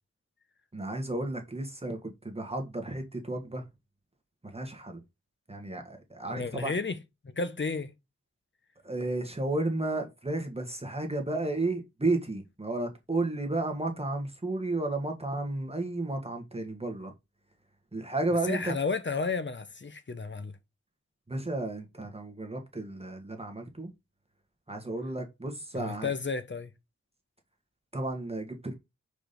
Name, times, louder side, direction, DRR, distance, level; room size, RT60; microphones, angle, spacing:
voice 1, 0.7-3.6 4.4-5.0 5.5-6.7 8.8-17.1 17.9-18.7 21.3-23.9 24.7-26.1 27.9-28.7, right 2 dB, 20° right, 1.4 m, -33 dB
voice 2, 6.3-7.9 18.4-20.6 25.7-26.7, left 4 dB, 40° left, 0.9 m, -32 dB
5.0 x 4.2 x 5.2 m
wide cardioid pair, 90°, 29 cm